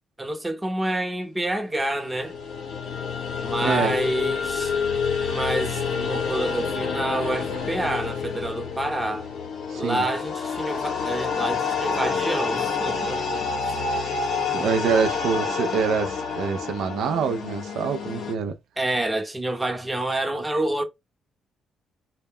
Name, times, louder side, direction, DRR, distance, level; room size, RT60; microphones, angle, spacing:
voice 1, 0.2-2.3 3.4-4.8 5.2-9.3 9.7-13.8 18.8-20.8, right 1 dB, 10° right, 0.6 m, -28 dB
sound 1, 1.9-18.3, left 5 dB, 70° left, 0.7 m, -28 dB
voice 2, 3.6-4.0 9.7-10.0 14.0-14.2 14.5-18.5, right 6 dB, 75° right, 0.4 m, -25 dB
2.1 x 2.1 x 3.5 m
cardioid pair, 90°, 0 cm